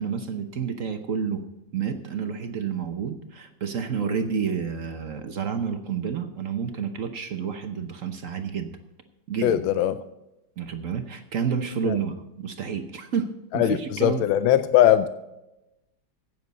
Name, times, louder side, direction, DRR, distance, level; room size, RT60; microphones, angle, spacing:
voice 1, 0.0-1.4 1.7-8.7 9.3-9.6 10.6-14.3, right 6 dB, 55° right, 7 dB, 0.9 m, -29 dB
voice 2, 9.4-10.0 11.8-12.0 13.5-15.1, left 11 dB, 85° left, 12 dB, 1.4 m, -20 dB
15.0 x 9.2 x 4.1 m, 0.94 s
omnidirectional pair, 2.2 m